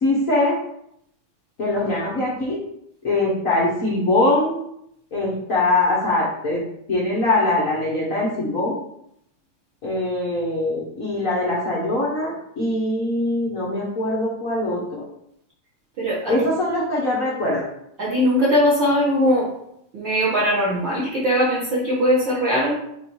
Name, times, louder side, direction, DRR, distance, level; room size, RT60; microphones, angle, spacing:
voice 1, 0.0-0.6 1.6-2.6 3.0-4.6 5.1-6.6 6.9-8.8 9.8-15.0 16.3-17.7, left 2 dB, 65° left, -5 dB, 0.8 m, -22 dB
voice 2, 16.0-16.3 18.0-19.5 19.9-22.8, equal, 45° right, -9 dB, 2.0 m, -20 dB
7.1 x 3.1 x 4.7 m, 0.75 s
omnidirectional pair, 3.3 m